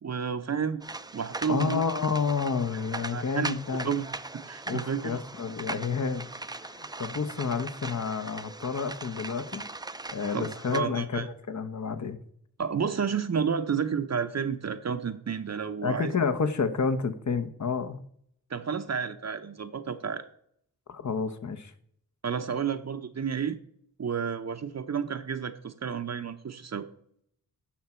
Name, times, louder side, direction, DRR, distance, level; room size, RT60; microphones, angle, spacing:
voice 1, 0.0-0.8 1.1-1.8 3.1-3.6 3.8-4.1 4.4-5.2 10.3-11.3 12.6-16.1 18.5-20.3 22.2-23.6 24.0-26.9, right 6 dB, 45° right, 8 dB, 0.7 m, -31 dB
sound 1, 0.8-10.8, right 2 dB, 10° right, 0.4 m, -39 dB
voice 2, 1.5-3.9 4.7-6.3 6.6-9.6 10.1-12.2 15.8-18.0 20.9-21.7, left 5 dB, 50° left, 9 dB, 1.0 m, -30 dB
10.0 x 6.0 x 4.3 m, 0.67 s
cardioid pair, 60°, 37 cm